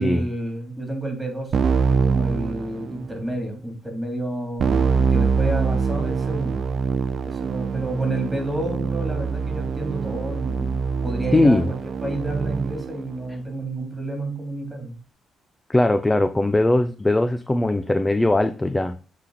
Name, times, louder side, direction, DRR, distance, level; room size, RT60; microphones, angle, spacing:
voice 1, 0.0-1.5 1.9-6.6 7.2-10.7 11.0-14.9, right 1 dB, 5° right, 2 dB, 3.2 m, -30 dB
Keyboard (musical), 1.5-3.2 4.6-13.0, right 5 dB, 50° right, 0.5 m, -24 dB
voice 2, 11.3-11.7 15.7-19.0, left 2 dB, 15° left, 10 dB, 0.5 m, -20 dB
7.8 x 4.1 x 4.1 m, 0.36 s
cardioid pair, 90°, 0 cm